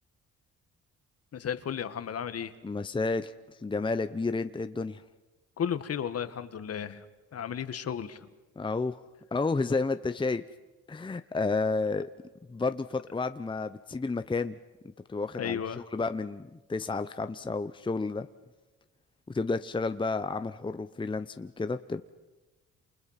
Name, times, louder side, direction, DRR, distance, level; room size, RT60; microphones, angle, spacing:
voice 1, 1.3-2.5 5.6-7.1 7.3-8.3 15.4-15.8, left 8 dB, 55° left, 11 dB, 1.7 m, -34 dB
voice 2, 2.6-5.0 8.6-9.0 9.3-10.4 10.9-12.1 12.5-14.5 15.1-15.6 15.9-18.3 19.3-22.0, left 3 dB, 15° left, 10 dB, 0.8 m, -31 dB
29.5 x 28.0 x 5.9 m, 1.1 s
cardioid pair, 90°, 30 cm